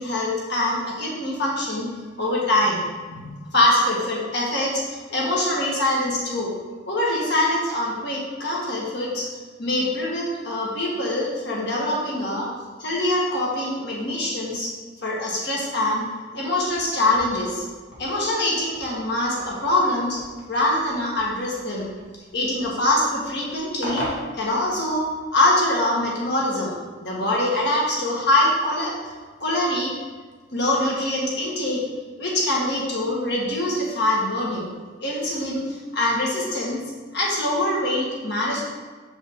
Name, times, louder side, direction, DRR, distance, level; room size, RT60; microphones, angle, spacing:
voice 1, 0.0-1.9 2.2-6.5 6.9-9.3 9.6-12.5 12.8-14.7 15.0-16.0 16.3-17.6 18.0-20.2 20.5-21.9 22.3-24.0 24.3-26.7 27.0-29.0 29.4-29.9 30.5-31.8 32.2-34.7 35.0-36.8 37.1-38.7, left 1 dB, 55° left, -4 dB, 1.5 m, -24 dB
sound 1, 16.5-25.2, equal, 90° left, 1.9 m, -40 dB
6.4 x 5.4 x 3.6 m, 1.4 s
head